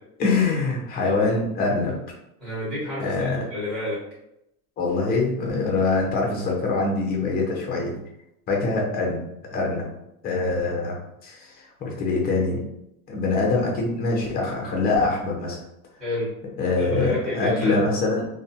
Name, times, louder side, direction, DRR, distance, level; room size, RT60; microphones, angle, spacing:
voice 1, 0.2-1.9 3.0-3.4 4.8-8.0 8.5-9.2 9.5-9.9 10.2-11.0 11.2-12.6 13.1-15.6 16.6-18.3, left 3 dB, 20° left, -1 dB, 0.6 m, -24 dB
voice 2, 2.4-4.0 16.0-16.3 16.7-17.8, left 1 dB, ahead, -11 dB, 1.4 m, -29 dB
2.5 x 2.2 x 2.7 m, 0.82 s
supercardioid pair, 145°, 44 cm